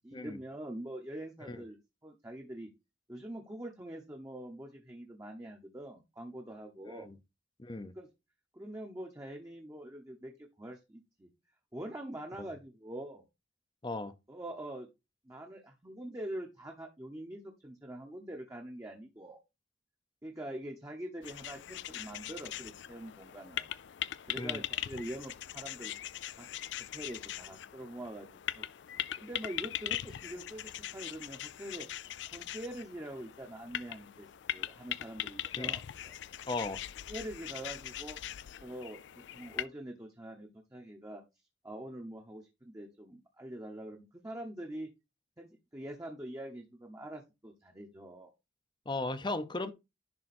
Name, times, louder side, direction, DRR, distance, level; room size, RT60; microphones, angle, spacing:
voice 1, 0.0-2.7 3.1-7.1 7.8-8.1 8.5-11.3 11.7-13.2 14.3-14.9 15.2-19.4 20.2-23.7 24.2-25.9 26.4-26.5 26.9-28.7 29.2-31.9 32.3-36.1 37.1-38.2 38.6-41.2 41.6-44.9 45.4-48.3, right 1 dB, 15° right, 0.9 m, -44 dB
voice 2, 6.9-7.2 7.6-7.9 13.8-14.1 24.3-24.6 35.6-35.7 36.5-36.8 48.9-49.7, left 2 dB, 25° left, 0.7 m, -36 dB
sound 1, 21.2-39.7, left 12 dB, 70° left, 0.4 m, -41 dB
10.5 x 3.7 x 4.3 m
head